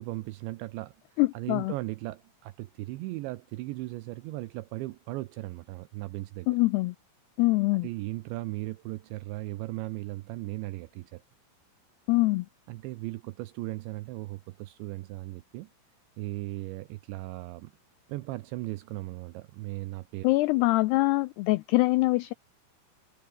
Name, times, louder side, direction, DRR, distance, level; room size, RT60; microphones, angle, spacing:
voice 1, 0.0-6.5 7.8-11.2 12.7-15.7 16.2-17.7 18.1-20.3, right 19 dB, 80° right, 3.0 m, -37 dB
voice 2, 1.2-1.7 6.5-7.0 7.4-7.9 12.1-12.5 20.2-22.3, left 21 dB, 85° left, 2.3 m, -24 dB
omnidirectional pair, 5.4 m